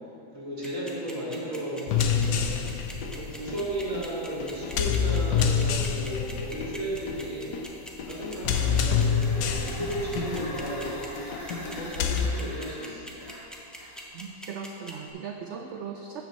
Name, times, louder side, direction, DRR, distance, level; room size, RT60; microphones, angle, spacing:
voice 1, 0.3-2.6 3.0-7.5 8.0-11.0 11.5-13.2, right 1 dB, 50° right, -7 dB, 2.6 m, -34 dB
sound 1, 0.6-15.1, equal, ahead, 0.6 m, -42 dB
sound 2, 1.9-12.3, left 7 dB, 80° left, 1.3 m, -28 dB
sound 3, 8.1-14.3, left 1 dB, 55° left, 2.4 m, -44 dB
voice 2, 14.1-16.2, right 6 dB, 70° right, 3 dB, 0.6 m, -38 dB
13.0 x 7.8 x 3.1 m, 2.9 s
omnidirectional pair, 1.7 m